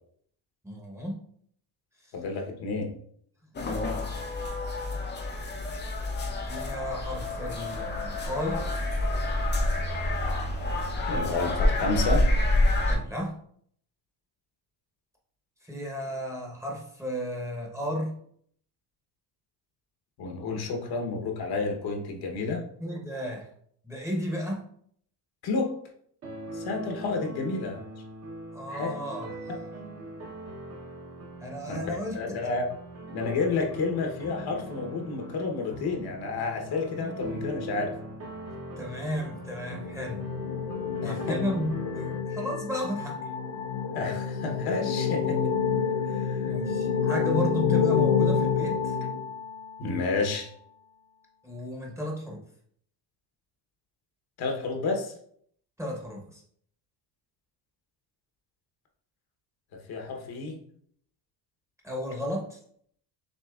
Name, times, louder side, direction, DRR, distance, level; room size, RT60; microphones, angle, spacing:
voice 1, 0.6-1.2 6.4-8.6 12.8-13.3 15.6-18.1 22.8-23.5 23.8-24.6 28.5-29.3 31.4-32.2 38.8-40.2 41.0-43.3 46.5-49.0 51.4-52.4 55.8-56.4 61.8-62.6, equal, 5° right, -2 dB, 0.9 m, -33 dB
voice 2, 2.1-2.9 11.1-12.3 20.2-22.6 25.4-25.7 26.5-27.8 28.7-28.9 31.7-32.6 33.1-37.9 41.0-41.4 43.9-45.5 46.1-46.4 49.8-50.5 54.4-55.1 59.9-60.6, left 3 dB, 55° left, 2 dB, 1.0 m, -30 dB
sound 1, 3.5-13.0, left 1 dB, 25° left, 0.5 m, -27 dB
sound 2, 26.2-42.2, right 1 dB, 35° right, 0.8 m, -41 dB
sound 3, 39.1-49.9, left 6 dB, 80° left, 0.8 m, -28 dB
6.4 x 2.9 x 2.3 m, 0.64 s
cardioid pair, 115°, 44 cm